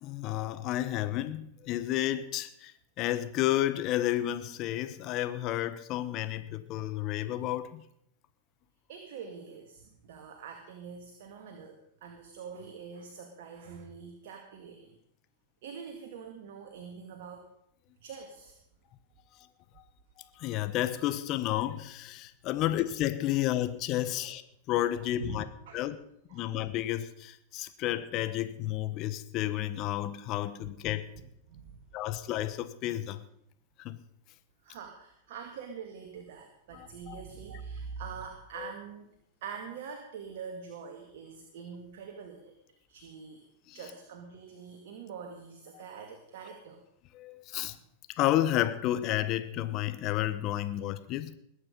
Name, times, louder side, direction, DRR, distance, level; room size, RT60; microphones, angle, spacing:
voice 1, 0.0-2.7 3.0-7.8 20.4-24.4 24.7-25.4 25.7-26.0 26.3-31.0 31.9-33.2 33.8-34.0 36.7-37.2 38.6-38.7 43.7-43.8 45.7-45.8 47.1-47.7 48.2-51.4, left 13 dB, 45° left, 12 dB, 1.2 m, -31 dB
voice 2, 8.9-14.9 15.6-17.5 18.0-18.5 23.9-24.1 25.0-25.8 26.3-26.5 31.5-31.8 34.6-39.1 39.4-42.5 42.9-43.4 43.7-46.8 47.7-47.8, right 6 dB, 65° right, 4 dB, 2.1 m, -44 dB
21.0 x 8.9 x 5.4 m, 0.74 s
hypercardioid pair, 105°, 0 cm